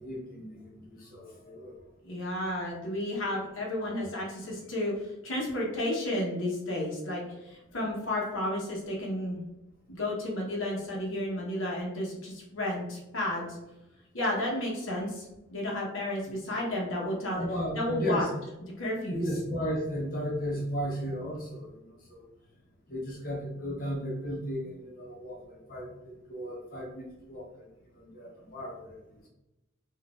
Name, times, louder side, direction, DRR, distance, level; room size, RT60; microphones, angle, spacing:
voice 1, 0.0-1.7 16.2-16.3 17.3-18.3 19.1-21.7 22.1-22.2 22.9-27.5 28.1-28.8, equal, 45° left, -3 dB, 0.8 m, -35 dB
voice 2, 2.0-9.5 9.9-13.6 14.1-15.3 15.5-17.5 17.7-18.2 18.8-19.3, left 1 dB, 70° left, -3 dB, 0.9 m, -32 dB
3.9 x 2.5 x 2.4 m, 0.95 s
head